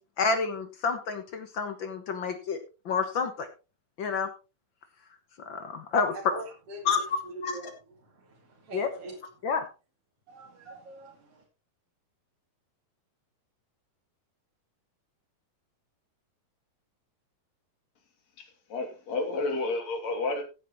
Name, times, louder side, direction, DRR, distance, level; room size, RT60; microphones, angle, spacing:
voice 1, 0.2-2.6 2.8-3.5 4.0-4.3 5.4-6.1 6.8-7.0 7.4-7.5 8.7-8.9 9.4-9.7, left 5 dB, 75° left, 1.1 m, -29 dB
voice 2, 6.2-9.5 10.3-11.4, right 2 dB, 45° right, 3.1 m, -43 dB
voice 3, 18.4-20.4, left 3 dB, 50° left, 3.7 m, -31 dB
15.5 x 9.2 x 3.1 m
omnidirectional pair, 4.1 m